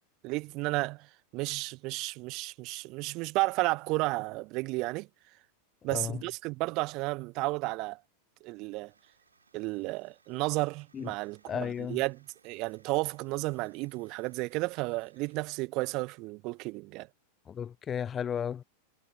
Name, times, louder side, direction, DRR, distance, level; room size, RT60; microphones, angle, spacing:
voice 1, 0.2-5.1 5.8-8.0 8.4-8.9 9.5-17.1, right 23 dB, 40° right, 0.8 m, -33 dB
sound 1, 8.9-15.6, right 4 dB, 75° right, 6.2 m, -66 dB
voice 2, 11.5-12.0 17.5-18.6, left 8 dB, 25° left, 0.3 m, -34 dB
figure-of-eight pair, 90°, 0 cm